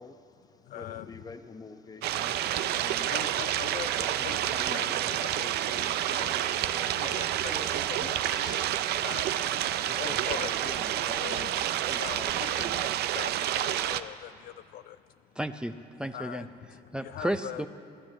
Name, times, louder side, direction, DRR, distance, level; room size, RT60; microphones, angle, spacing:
voice 1, 0.0-3.2 4.0-9.1 9.7-13.2, left 4 dB, 20° left, 9 dB, 0.8 m, -46 dB
voice 2, 0.6-1.1 3.1-5.5 6.1-6.3 7.0-8.3 9.0-10.6 11.2-12.6 13.1-15.0 16.1-17.6, left 12 dB, 60° left, 12 dB, 0.4 m, -42 dB
sound 1, 2.0-14.0, right 12 dB, 75° right, 0.6 m, -29 dB
voice 3, 15.4-16.5 16.9-17.7, right 1 dB, 5° right, 8 dB, 0.5 m, -33 dB
14.5 x 10.0 x 8.7 m, 2.5 s
cardioid pair, 110°, 17 cm